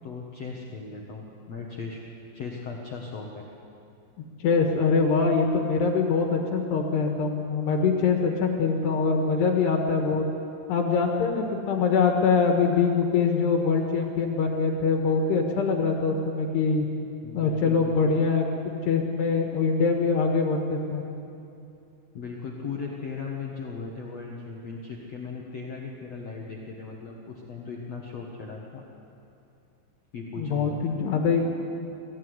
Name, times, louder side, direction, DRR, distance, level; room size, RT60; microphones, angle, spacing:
voice 1, 0.0-2.0 2.3-3.4 17.2-18.1 22.1-28.8 30.1-30.8, left 4 dB, 90° left, -1 dB, 1.4 m, -37 dB
voice 2, 4.4-10.3 10.7-16.9 17.3-21.0 30.4-31.4, left 5 dB, 65° left, 3 dB, 3.2 m, -23 dB
22.0 x 16.5 x 9.6 m, 2.7 s
omnidirectional pair, 5.8 m